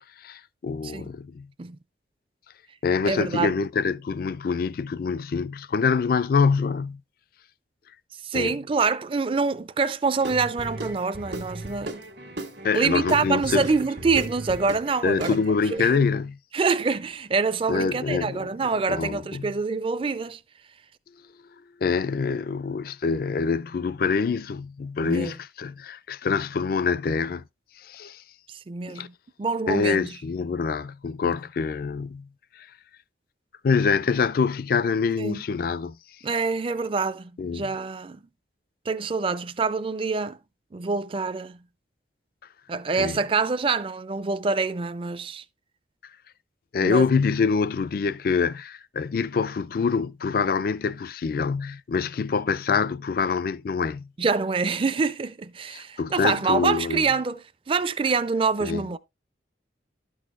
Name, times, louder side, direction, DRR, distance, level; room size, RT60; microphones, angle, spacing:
voice 1, 0.2-1.5 2.8-7.0 8.3-8.5 12.6-13.7 15.0-16.4 17.7-18.5 18.9-19.5 21.8-27.4 27.8-28.2 28.9-29.1 29.7-32.3 32.6-32.7 33.6-36.0 37.4-37.7 43.0-43.2 46.7-54.1 55.7-57.0 58.6-58.8, left 5 dB, 55° left, 0.4 m, -25 dB
voice 2, 3.1-3.5 8.2-12.0 12.7-15.4 15.7-16.0 16.5-20.4 25.0-25.3 28.5-30.1 35.2-35.4 36.2-38.2 38.9-40.4 40.7-41.6 42.7-45.4 46.8-47.1 54.2-59.0, right 4 dB, 30° right, 0.4 m, -26 dB
Guitar / Drum, 10.2-15.8, right 1 dB, 75° right, 1.5 m, -36 dB
12.0 x 6.4 x 2.4 m
head